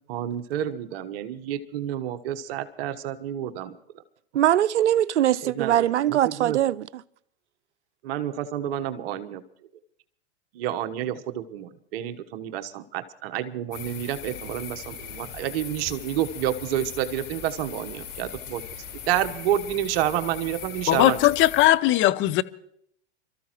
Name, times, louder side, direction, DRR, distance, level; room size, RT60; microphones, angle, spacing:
voice 1, 0.1-3.7 5.4-6.6 8.0-9.4 10.5-18.6 19.1-21.2, right 11 dB, 60° right, 1.2 m, -29 dB
voice 2, 4.3-6.9, right 12 dB, 90° right, 0.6 m, -21 dB
sound 1, 13.7-21.7, left 8 dB, 55° left, 5.3 m, -39 dB
voice 3, 20.9-22.4, left 15 dB, 35° left, 0.8 m, -19 dB
27.5 x 14.0 x 3.0 m
hypercardioid pair, 115°, 34 cm